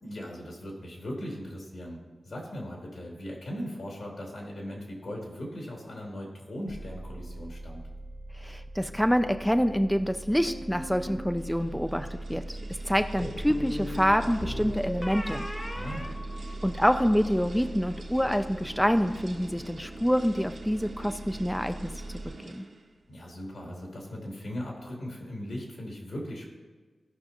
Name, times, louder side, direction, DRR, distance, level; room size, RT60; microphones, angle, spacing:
voice 1, 0.0-7.8 13.2-13.3 15.7-16.1 23.1-26.5, equal, 75° left, -2 dB, 2.6 m, -39 dB
sound 1, 6.7-22.3, right 1 dB, 35° right, 1.0 m, -41 dB
voice 2, 8.4-12.6 12.8-15.5 16.6-21.9 22.4-22.6, equal, 5° left, 8 dB, 0.4 m, -26 dB
sound 2, 10.5-11.3 13.2-17.0, left 1 dB, 25° left, 1.1 m, -38 dB
sound 3, 10.9-23.0, right 2 dB, 75° right, 1.5 m, -47 dB
16.5 x 5.6 x 2.9 m, 1.4 s
cardioid pair, 70°, 0 cm